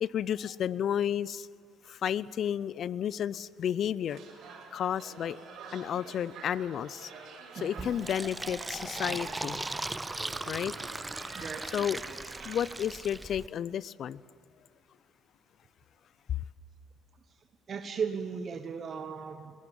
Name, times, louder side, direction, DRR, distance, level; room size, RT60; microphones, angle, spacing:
voice 1, 0.0-1.5 1.9-4.2 4.7-5.4 5.7-7.1 7.6-9.6 10.5-10.7 11.7-12.0 12.4-14.2, left 9 dB, 60° left, 20 dB, 0.6 m, -32 dB
sound 1, 4.1-12.8, right 5 dB, 65° right, 5.3 m, -48 dB
voice 2, 7.5-7.9 11.3-11.7 17.7-19.5, right 6 dB, 50° right, 7 dB, 1.2 m, -36 dB
Fill (with liquid), 7.8-13.5, right 2 dB, 15° right, 0.6 m, -38 dB
21.5 x 17.5 x 8.7 m, 2.2 s
supercardioid pair, 70°, 0 cm